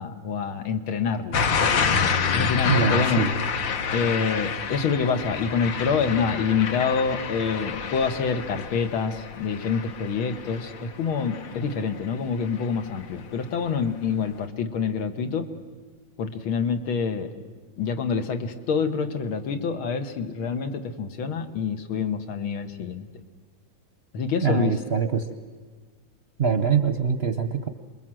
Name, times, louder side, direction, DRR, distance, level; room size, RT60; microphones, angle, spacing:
voice 1, 0.0-1.4 2.3-3.3 3.9-15.5 16.2-17.3 17.8-23.1 24.1-24.8, left 5 dB, 85° left, 6 dB, 2.2 m, -26 dB
sound 1, 1.3-12.2 12.6-13.0, left 6 dB, 65° left, 1.8 m, -28 dB
voice 2, 2.7-3.3 24.4-25.3 26.4-27.7, right 6 dB, 45° right, 7 dB, 0.8 m, -23 dB
28.0 x 21.5 x 7.7 m, 1.4 s
omnidirectional pair, 2.2 m